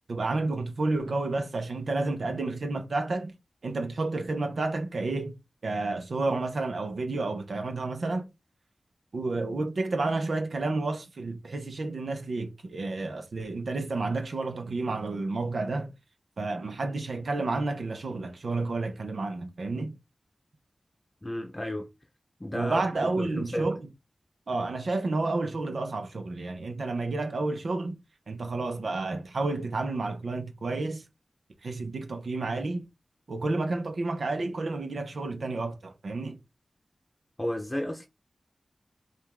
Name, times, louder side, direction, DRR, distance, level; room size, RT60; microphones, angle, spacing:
voice 1, 0.1-3.3 3.6-5.3 5.6-8.3 9.1-15.9 16.4-19.9 22.5-23.8 24.5-28.0 28.3-31.0 31.6-32.9 33.3-36.4, right 3 dB, 75° right, 0.9 m, -30 dB
voice 2, 21.2-21.9 22.4-23.7 37.4-38.1, left 1 dB, 25° left, 0.8 m, -33 dB
5.2 x 2.5 x 3.5 m
cardioid pair, 45°, 0 cm